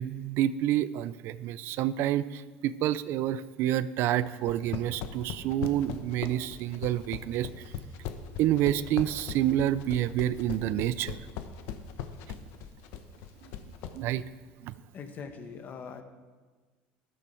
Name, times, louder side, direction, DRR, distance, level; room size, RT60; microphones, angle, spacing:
voice 1, 0.0-7.5 8.4-11.2 13.9-14.2 14.6-14.7, right 12 dB, 60° right, 17 dB, 0.5 m, -28 dB
sound 1, 4.4-14.0, left 9 dB, 70° left, 1.1 m, -38 dB
voice 2, 14.9-16.0, left 6 dB, 45° left, 6 dB, 1.6 m, -42 dB
13.5 x 12.0 x 4.5 m, 1.4 s
supercardioid pair, 110°, 4 cm